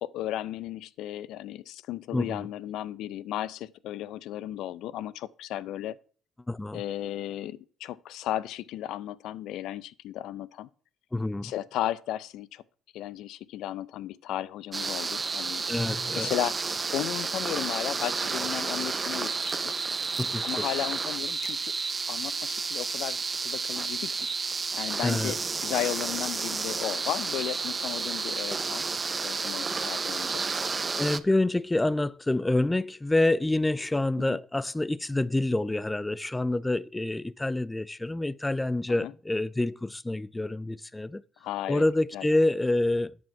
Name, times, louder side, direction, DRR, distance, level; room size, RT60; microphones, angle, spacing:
voice 1, 0.0-6.0 6.7-10.7 11.4-12.6 12.9-15.6 16.2-16.6 16.9-19.8 20.4-21.7 22.1-24.1 24.8-28.9 29.2-30.4 34.3-34.4 38.9-39.1 41.4-41.8 42.1-42.3, left 13 dB, 75° left, 0.4 m, -35 dB
voice 2, 2.1-2.5 6.5-6.8 11.1-11.5 15.7-16.3 20.2-20.7 25.0-25.3 31.0-41.2 41.7-43.2, left 2 dB, 15° left, 0.4 m, -27 dB
sound 1, 14.7-31.2, right 4 dB, 35° right, 0.7 m, -31 dB
11.0 x 5.1 x 5.8 m
supercardioid pair, 65°, 0 cm